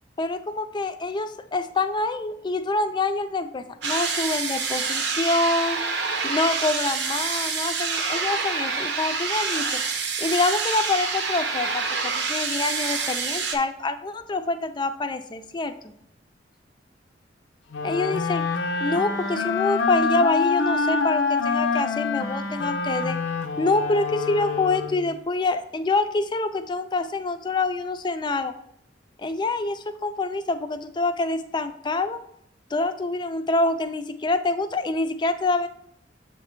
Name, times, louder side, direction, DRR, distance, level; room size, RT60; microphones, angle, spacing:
voice 1, 0.2-5.8 6.2-9.8 10.2-15.9 17.8-18.4 18.8-23.2 23.6-28.5 29.2-32.2 32.7-35.7, left 3 dB, 25° left, 9 dB, 0.4 m, -26 dB
sound 1, 3.8-13.6, right 5 dB, 70° right, 0.7 m, -27 dB
sound 2, 17.7-25.2, left 4 dB, 90° left, 0.6 m, -26 dB
7.3 x 3.2 x 4.4 m, 0.71 s
head